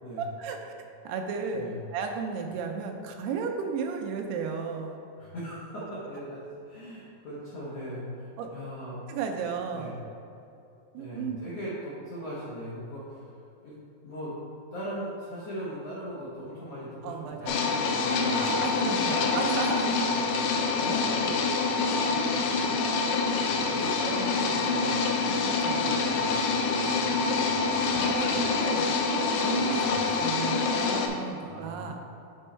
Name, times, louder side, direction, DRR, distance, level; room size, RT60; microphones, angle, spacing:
voice 1, 0.2-1.6 1.9-5.0 8.4-8.5 9.1-10.0 10.9-11.5 17.0-17.7 18.4-20.0 20.3-20.6 25.2-25.9 27.7-29.9 30.2-32.0, right 5 dB, 85° right, 3 dB, 2.6 m, -34 dB
voice 2, 5.2-9.0 9.7-10.0 11.0-13.3 13.6-13.7 14.0-14.3 14.7-18.6 19.2-19.4 20.1-22.1 22.5-22.8 23.5-25.0 25.7-27.7 28.2-28.5 29.8-30.0 31.4-32.0, equal, 75° left, -9 dB, 1.5 m, -39 dB
sound 1, 17.5-31.1, left 4 dB, 90° left, 2.7 m, -26 dB
7.6 x 4.5 x 4.3 m, 2.8 s
omnidirectional pair, 4.7 m